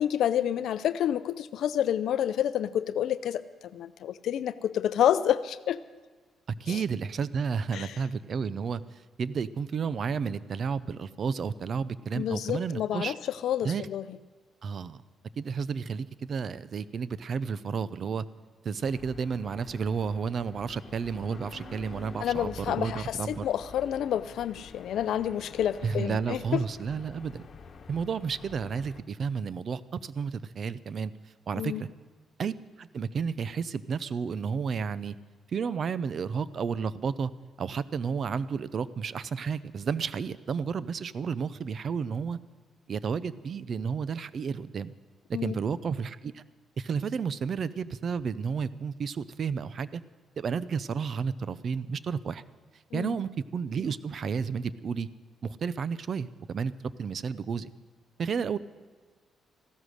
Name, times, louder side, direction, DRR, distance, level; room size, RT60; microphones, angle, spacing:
voice 1, 0.0-3.4 3.7-5.8 6.7-6.8 7.7-8.0 12.2-13.2 13.4-14.0 22.2-26.6 31.6-31.8 45.3-45.6 52.9-53.1, left 10 dB, 75° left, 14 dB, 0.4 m, -29 dB
voice 2, 6.6-13.1 13.6-13.9 14.6-15.0 15.4-18.2 18.6-23.4 25.8-27.5 27.9-31.1 31.5-31.9 32.4-35.2 35.5-37.3 37.6-42.4 42.9-44.9 45.3-46.4 46.8-50.0 50.4-52.4 52.9-55.1 55.4-56.7 57.0-57.7 58.2-58.6, right 6 dB, 50° right, 17 dB, 0.6 m, -32 dB
sound 1, 18.8-29.0, left 5 dB, 50° left, 1.5 m, -48 dB
15.0 x 12.5 x 6.4 m, 1.4 s
cardioid pair, 90°, 0 cm